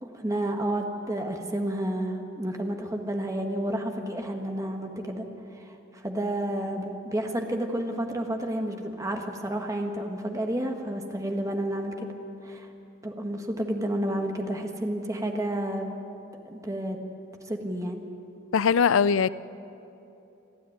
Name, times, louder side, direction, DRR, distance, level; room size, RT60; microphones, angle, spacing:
voice 1, 0.0-5.2 5.5-12.1 12.4-12.7 13.0-15.9 16.4-17.0 17.5-18.0, right 1 dB, 15° right, 3 dB, 1.5 m, -30 dB
voice 2, 18.5-19.3, left 6 dB, 85° left, 17 dB, 0.5 m, -21 dB
28.5 x 10.0 x 9.5 m, 2.9 s
head